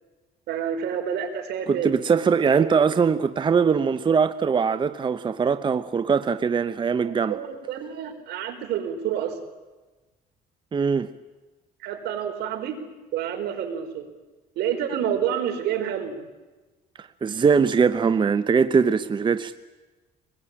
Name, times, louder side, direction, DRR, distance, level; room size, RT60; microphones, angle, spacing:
voice 1, 0.5-1.9 2.5-2.7 7.0-9.4 11.8-12.8 13.1-14.1 14.6-16.2, right 9 dB, 80° right, 4.3 m, -28 dB
voice 2, 1.7-7.4 10.7-11.1 17.0-19.5, right 6 dB, 30° right, 0.8 m, -21 dB
24.0 x 21.0 x 8.7 m
cardioid pair, 110°, 17 cm